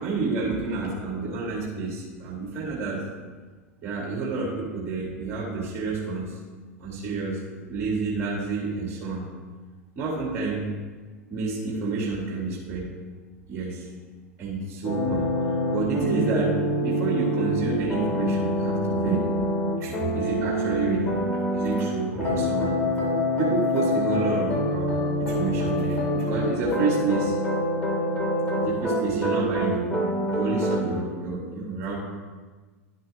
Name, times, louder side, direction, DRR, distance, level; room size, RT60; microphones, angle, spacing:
voice 1, 0.0-3.0 3.8-6.4 6.8-7.4 7.7-9.2 10.0-10.7 11.3-12.9 13.5-13.9 14.4-16.5 16.8-19.3 19.8-22.7 23.4-27.5 28.6-29.8 30.3-32.0, right 4 dB, 40° right, -4 dB, 2.5 m, -29 dB
sound 1, 14.8-21.9 22.2-30.8, equal, 15° left, 2.6 m, -26 dB
11.5 x 5.9 x 3.6 m, 1.3 s
hypercardioid pair, 90°, 8 cm